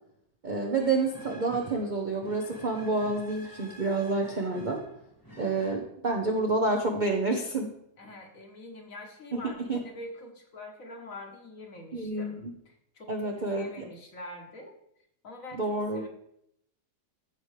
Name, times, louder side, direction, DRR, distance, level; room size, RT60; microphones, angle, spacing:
voice 1, 0.4-4.8 5.4-7.7 9.3-9.4 9.7-9.8 11.9-12.5 13.1-13.7 15.5-16.0, right 3 dB, 50° right, 2 dB, 0.5 m, -28 dB
sound 1, 0.8-5.8, equal, 15° left, 1.2 m, -48 dB
voice 2, 8.0-14.8 15.2-16.1, left 1 dB, 50° left, 3 dB, 1.4 m, -45 dB
13.5 x 5.0 x 3.2 m, 0.74 s
omnidirectional pair, 1.9 m